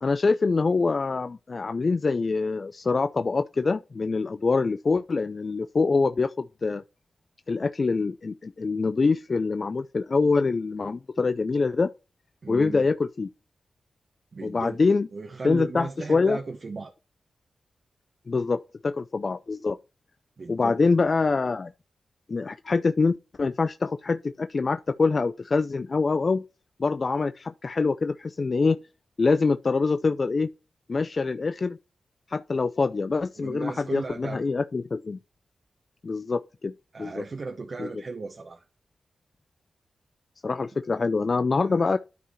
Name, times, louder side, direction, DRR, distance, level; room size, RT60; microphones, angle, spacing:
voice 1, 0.0-6.8 7.5-11.9 12.5-13.3 14.4-15.1 15.4-16.4 18.3-19.8 20.5-21.7 22.3-26.4 26.8-28.8 29.2-30.5 30.9-31.8 32.3-35.2 36.0-36.7 37.0-37.2 37.8-37.9 40.4-42.0, left 4 dB, 50° left, 0.4 m, -25 dB
voice 2, 12.4-12.9 14.3-14.8 15.1-16.9 20.4-20.8 33.4-34.4 36.9-38.6 41.7-42.0, right 4 dB, 55° right, 1.0 m, -36 dB
12.0 x 4.6 x 3.1 m
cardioid pair, 45°, 0 cm